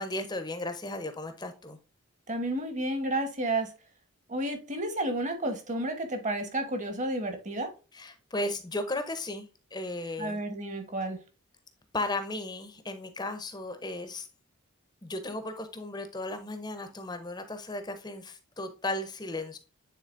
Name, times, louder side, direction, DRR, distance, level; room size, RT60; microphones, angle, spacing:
voice 1, 0.0-1.8 7.9-10.4 11.9-14.3 15.0-19.6, left 2 dB, 20° left, 0.7 m, -35 dB
voice 2, 2.3-3.7 4.3-7.7 10.2-11.2, right 1 dB, 35° right, 1.2 m, -31 dB
9.2 x 4.0 x 2.6 m
head